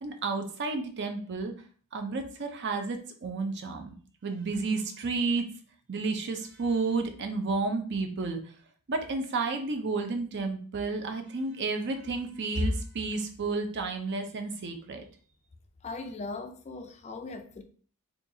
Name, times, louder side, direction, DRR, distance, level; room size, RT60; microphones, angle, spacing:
voice 1, 0.0-1.5 1.9-3.9 4.2-5.5 5.9-8.4 8.9-15.0, right 3 dB, 50° right, 0.6 m, -31 dB
voice 2, 15.8-17.6, left 3 dB, 30° left, 0.4 m, -39 dB
4.3 x 2.4 x 2.7 m
head